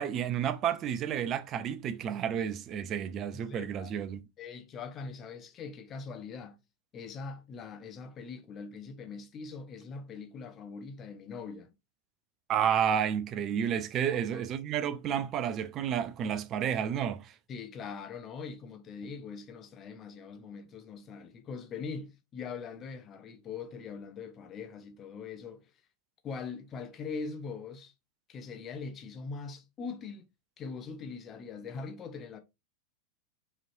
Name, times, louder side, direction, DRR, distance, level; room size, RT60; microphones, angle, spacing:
voice 1, 0.0-4.2 12.5-17.3, right 9 dB, 30° right, 0.5 m, -31 dB
voice 2, 3.3-3.9 4.4-6.6 6.9-11.7 14.1-14.4 17.5-25.7 26.2-27.9 28.3-30.3 30.6-32.4, left 5 dB, 30° left, 0.7 m, -42 dB
4.9 x 3.1 x 2.7 m
figure-of-eight pair, 90°, 0 cm